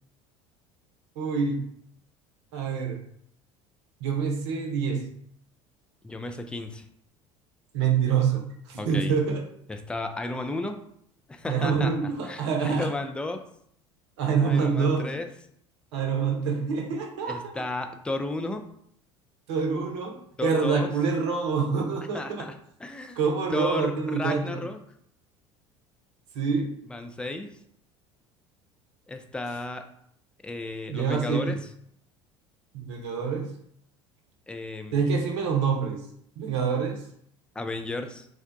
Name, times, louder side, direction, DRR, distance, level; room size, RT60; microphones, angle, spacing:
voice 1, 1.2-1.6 2.5-3.0 4.0-5.1 7.7-8.4 8.7-9.4 11.5-12.9 14.2-15.1 15.9-17.5 19.5-22.5 23.2-24.6 26.3-26.7 30.9-31.5 32.7-33.5 34.9-36.0 36.4-37.0, right 5 dB, 65° right, 2 dB, 0.7 m, -26 dB
voice 2, 6.0-6.8 8.8-9.2 9.7-10.8 11.3-11.9 12.2-13.4 14.4-15.3 17.3-18.7 20.4-20.9 22.1-22.5 22.8-23.2 23.5-24.8 26.9-27.5 29.1-29.9 30.4-31.6 34.5-35.0 37.6-38.3, left 2 dB, 5° left, 6 dB, 0.3 m, -33 dB
3.5 x 2.2 x 2.5 m, 0.67 s
figure-of-eight pair, 65°, 16 cm